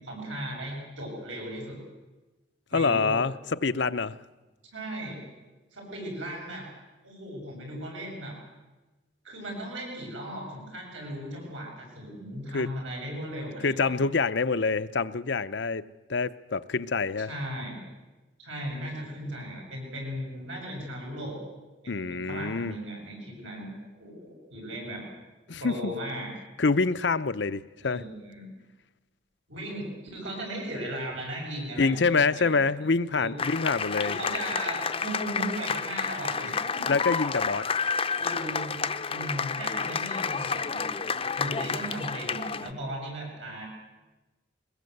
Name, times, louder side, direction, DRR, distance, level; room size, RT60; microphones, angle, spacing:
voice 1, 0.0-1.8 2.7-3.2 4.7-5.2 5.7-6.7 7.0-8.3 9.2-13.9 17.3-17.8 18.4-21.4 21.8-25.0 25.6-26.3 27.8-28.5 29.5-29.9 30.1-32.6 33.2-33.3 34.0-36.8 38.2-38.8 39.1-40.9 41.3-43.7, right 1 dB, 75° right, 7.4 m, -37 dB
voice 2, 2.7-4.1 12.5-12.7 13.6-15.8 16.1-17.3 21.9-22.7 25.5-25.9 26.6-28.0 31.8-34.2 36.9-37.7, left 4 dB, 60° left, 0.7 m, -26 dB
sound 1, 33.4-42.7, left 5 dB, 30° left, 0.7 m, -30 dB
22.5 x 20.5 x 7.9 m
head